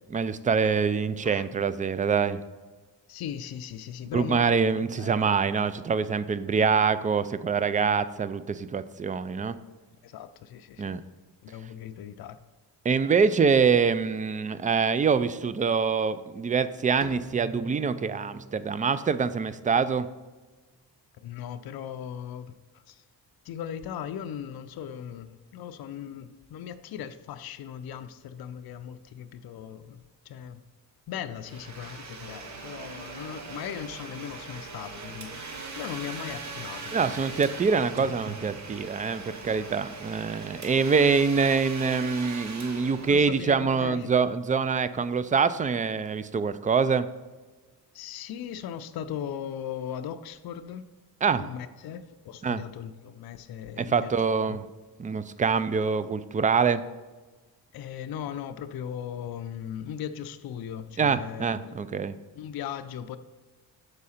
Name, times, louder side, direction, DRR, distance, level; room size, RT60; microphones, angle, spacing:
voice 1, 0.1-2.4 4.1-9.6 10.8-11.0 12.8-20.1 36.9-47.1 51.2-51.5 52.4-52.6 53.8-54.7 55.0-56.8 61.0-62.1, right 5 dB, 20° right, 0.3 m, -25 dB
voice 2, 3.1-4.4 4.8-5.3 10.0-11.0 11.4-12.4 21.2-22.5 22.9-23.0 23.4-30.6 31.1-37.5 43.1-44.3 47.9-50.9 51.4-54.2 54.5-54.6 57.7-61.8 62.3-63.2, left 9 dB, 65° left, 0.5 m, -38 dB
Bowed string instrument, 17.0-20.2, right 3 dB, 60° right, 1.2 m, -44 dB
Domestic sounds home sounds, 31.4-43.9, right 4 dB, 45° right, 1.0 m, -41 dB
sound 1, 32.2-40.8, right 6 dB, 80° right, 0.8 m, -47 dB
6.6 x 4.7 x 4.2 m
cardioid pair, 70°, 40 cm